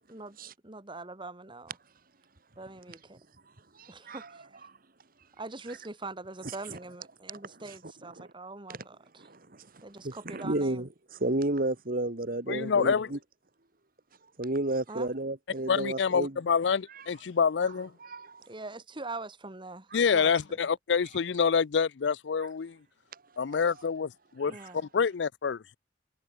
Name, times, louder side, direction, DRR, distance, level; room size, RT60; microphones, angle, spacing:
voice 1, 0.6-1.8 2.6-3.3 3.9-4.7 5.4-9.3 9.8-10.9 14.9-15.1 15.6-15.7 18.5-20.6 24.5-24.8, right 3 dB, 30° right, 2.2 m, -43 dB
voice 2, 3.7-4.2 6.7-6.8 8.2-8.3 9.2-13.2 14.4-16.4 16.9-17.0 18.0-18.4 19.9-20.0 23.1-23.2 23.5-23.6 24.5-24.6, right 2 dB, 55° right, 2.1 m, -32 dB
voice 3, 12.5-13.1 15.7-17.9 19.9-22.8 23.4-24.5 24.9-25.8, left 6 dB, 80° left, 0.5 m, -27 dB
head